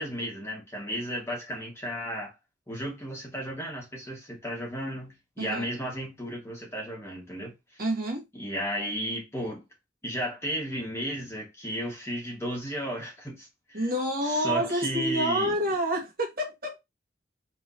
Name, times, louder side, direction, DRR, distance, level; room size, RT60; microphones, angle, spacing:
voice 1, 0.0-2.3 2.7-7.5 8.3-9.6 10.0-13.8 14.3-15.6, equal, 15° left, 1.5 m, -34 dB
voice 2, 7.8-8.3 13.7-16.7, right 1 dB, 50° right, 1.5 m, -28 dB
4.5 x 3.4 x 2.7 m
head